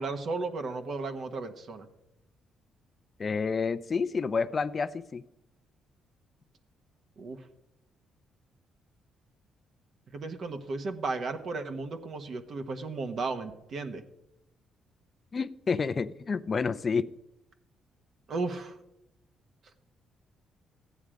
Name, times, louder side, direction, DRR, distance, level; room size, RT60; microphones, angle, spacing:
voice 1, 0.0-1.9 7.2-7.5 10.1-14.0 18.3-18.8, right 3 dB, 60° right, 7 dB, 1.2 m, -34 dB
voice 2, 3.2-5.2 15.3-17.1, left 5 dB, 40° left, 15 dB, 0.5 m, -29 dB
14.0 x 9.6 x 5.0 m, 0.86 s
cardioid pair, 90°, 0 cm